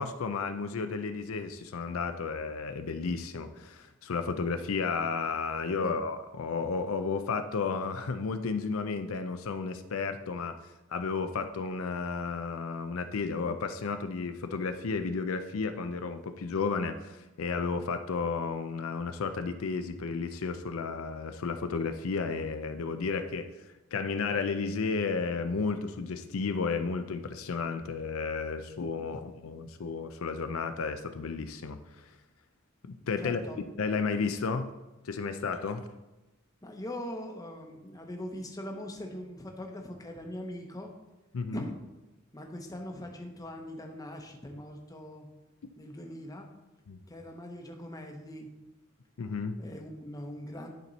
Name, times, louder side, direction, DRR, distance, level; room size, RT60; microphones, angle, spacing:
voice 1, 0.0-10.6 10.9-23.5 23.9-32.1 32.8-33.4 33.8-34.7 35.0-35.9 41.3-41.7 46.9-47.0 49.2-49.6, left 4 dB, 75° left, 8 dB, 0.5 m, -32 dB
voice 2, 33.2-33.6 36.6-40.9 41.5-41.8 42.3-45.3 45.8-46.5 47.1-48.5 49.6-50.7, left 1 dB, 15° left, 3 dB, 0.9 m, -41 dB
11.0 x 4.4 x 4.0 m, 1.0 s
head